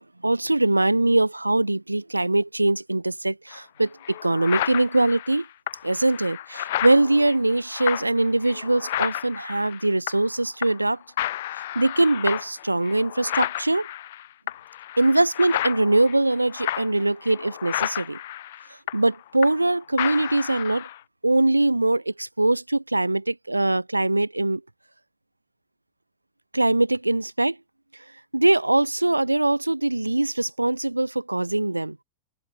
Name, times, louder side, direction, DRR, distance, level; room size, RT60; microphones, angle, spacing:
voice 1, 0.0-5.5 5.8-11.0 11.5-13.9 15.0-18.2 18.7-20.9 21.2-24.6 26.5-27.6 28.3-32.0, right 2 dB, 85° right, 4.3 m, -22 dB
sound 1, 3.5-3.6 4.0-10.4 10.6-10.9 11.2-19.7 20.0-21.0, left 14 dB, 55° left, 2.5 m, -32 dB
open air
figure-of-eight pair, 90°, 0 cm